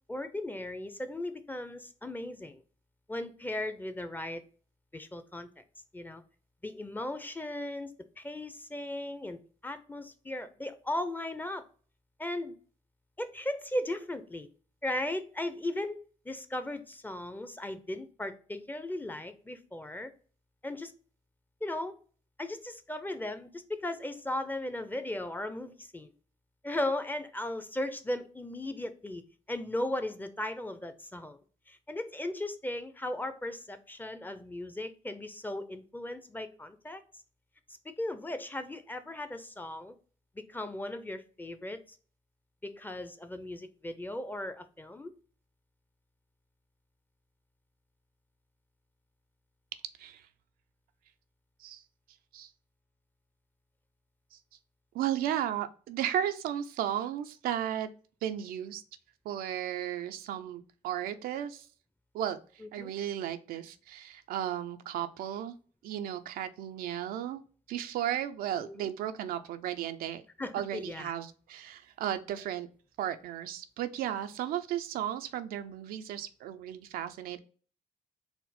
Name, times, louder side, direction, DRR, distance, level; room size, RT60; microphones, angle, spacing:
voice 1, 0.1-2.6 3.1-4.4 4.9-5.6 5.9-6.2 6.6-11.6 12.2-12.6 13.2-14.5 14.8-16.0 16.3-20.1 20.6-20.9 21.6-21.9 22.4-26.1 26.6-29.2 29.5-31.4 31.7-37.0 37.8-39.9 40.5-41.8 42.6-45.1 62.6-62.9 68.6-68.9 70.4-71.1, left 1 dB, 10° left, 10 dB, 0.5 m, -37 dB
voice 2, 54.9-57.9 58.2-58.8 59.2-61.7 62.1-65.5 65.8-67.4 67.7-70.2 70.5-72.7 73.0-77.4, right 11 dB, 80° right, 9 dB, 0.4 m, -34 dB
4.2 x 2.0 x 4.0 m, 0.40 s
cardioid pair, 70°, 15 cm